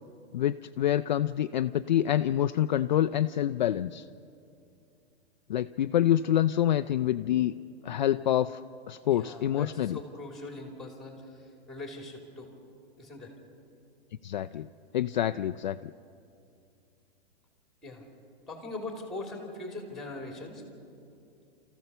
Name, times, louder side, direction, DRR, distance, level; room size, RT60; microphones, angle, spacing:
voice 1, 0.3-4.0 5.5-7.5 7.8-8.6 8.9-10.0 14.2-14.7 14.9-15.8, left 11 dB, 45° left, 10 dB, 0.4 m, -26 dB
voice 2, 9.1-12.5 13.0-13.3 17.8-18.1 18.5-20.6, left 2 dB, ahead, 2 dB, 2.7 m, -41 dB
27.5 x 15.0 x 6.8 m, 2.6 s
hypercardioid pair, 165°, 32 cm